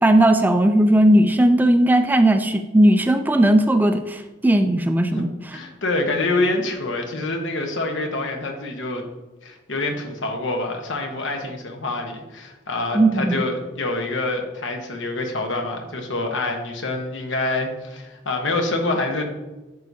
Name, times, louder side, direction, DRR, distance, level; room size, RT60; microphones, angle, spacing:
voice 1, 0.0-5.3 12.9-13.4, right 1 dB, 10° right, 7 dB, 0.3 m, -17 dB
voice 2, 5.5-9.1 9.4-19.2, left 2 dB, 80° left, 3 dB, 1.1 m, -26 dB
10.5 x 4.7 x 2.7 m, 1.2 s
head